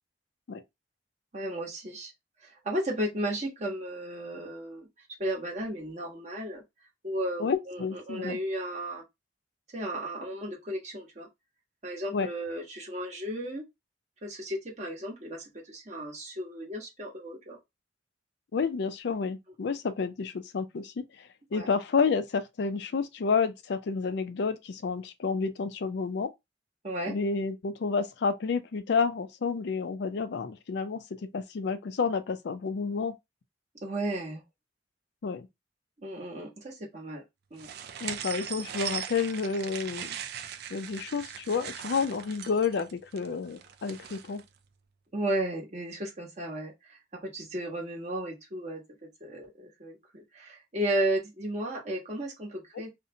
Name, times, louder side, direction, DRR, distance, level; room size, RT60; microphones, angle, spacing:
voice 1, 1.3-2.1 2.4-4.9 5.2-6.6 7.0-9.0 9.7-11.3 11.8-13.6 14.2-17.6 21.5-21.7 26.8-27.2 33.8-34.4 36.0-37.2 37.5-37.7 45.1-46.7 47.2-48.8 49.2-52.9, right 1 dB, 40° right, 1.1 m, -34 dB
voice 2, 7.4-8.4 12.1-12.3 18.5-26.3 27.1-31.0 31.3-33.1 35.2-35.5 38.0-40.1 40.7-44.4, left 5 dB, 65° left, 0.4 m, -30 dB
sound 1, 37.6-44.4, right 8 dB, 60° right, 0.4 m, -39 dB
2.6 x 2.1 x 2.7 m
head